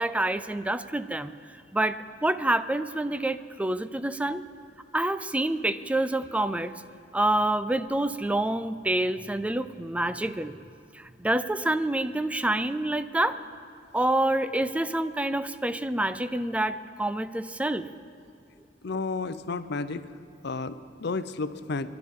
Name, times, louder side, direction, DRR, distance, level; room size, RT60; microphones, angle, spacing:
voice 1, 0.0-1.3 1.7-4.5 4.9-6.7 7.1-10.6 10.9-13.4 13.9-17.9, right 1 dB, 5° right, 12 dB, 0.4 m, -27 dB
voice 2, 18.8-20.0 20.4-21.9, left 3 dB, 65° left, 12 dB, 0.6 m, -32 dB
29.0 x 12.0 x 3.7 m, 2.5 s
head